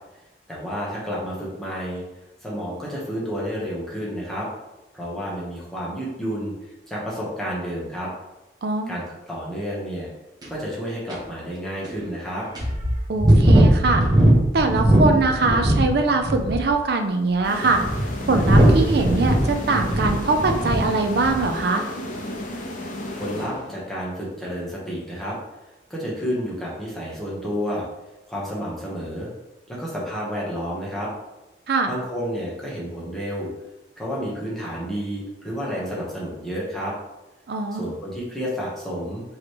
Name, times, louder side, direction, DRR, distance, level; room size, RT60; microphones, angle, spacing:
voice 1, 0.5-2.0 2.4-4.5 4.9-8.1 8.9-10.1 10.5-12.5 23.2-25.4 25.9-27.8 28.3-29.3 29.7-31.1 31.9-33.5 34.0-36.9 37.7-39.2, equal, ahead, -6 dB, 1.1 m, -30 dB
voice 2, 8.6-9.0 13.1-14.0 14.5-17.8 18.3-21.9 31.7-31.9 37.5-37.9, right 3 dB, 55° right, 5 dB, 0.4 m, -22 dB
sound 1, 10.4-10.5 11.1-11.2 11.8-11.9 12.6-15.9 16.2-16.7 17.4-20.9 21.2-21.5, right 1 dB, 20° right, 0.8 m, -19 dB
sound 2, 17.4-24.1, left 1 dB, 45° left, 0.6 m, -33 dB
5.0 x 3.1 x 3.1 m, 1.0 s
head